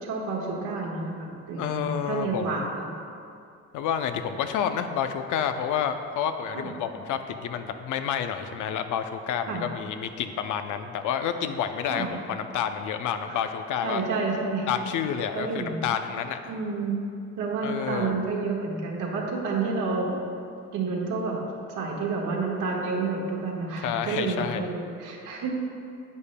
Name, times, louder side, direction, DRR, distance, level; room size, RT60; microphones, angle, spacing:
voice 1, 0.0-2.9 6.5-6.7 9.5-9.6 11.9-12.1 13.3-13.4 13.8-14.7 15.3-15.8 16.5-17.0 17.4-20.2 20.7-21.4 21.7-25.5, right 4 dB, 80° right, -2 dB, 1.5 m, -29 dB
voice 2, 1.6-2.7 3.7-14.0 14.7-16.4 17.6-18.2 23.8-24.7, left 8 dB, 85° left, 8 dB, 0.6 m, -29 dB
10.5 x 8.3 x 2.2 m, 2.5 s
cardioid pair, 90°, 30 cm